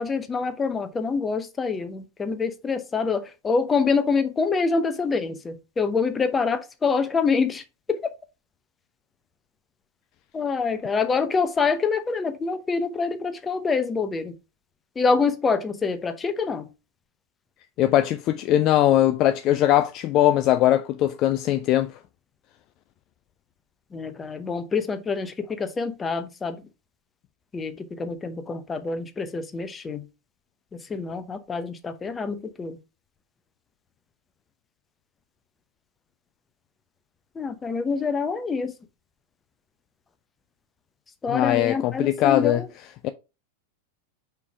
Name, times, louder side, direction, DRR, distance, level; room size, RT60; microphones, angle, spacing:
voice 1, 0.0-7.6 7.9-8.1 10.3-14.3 15.0-16.7 23.9-26.6 27.5-30.0 30.9-32.8 37.3-38.7 41.2-42.7, left 5 dB, 15° left, 0.9 m, -26 dB
voice 2, 17.8-21.9 41.3-42.6 43.0-43.1, left 13 dB, 35° left, 0.4 m, -20 dB
5.4 x 4.6 x 4.8 m
figure-of-eight pair, 90°, 0 cm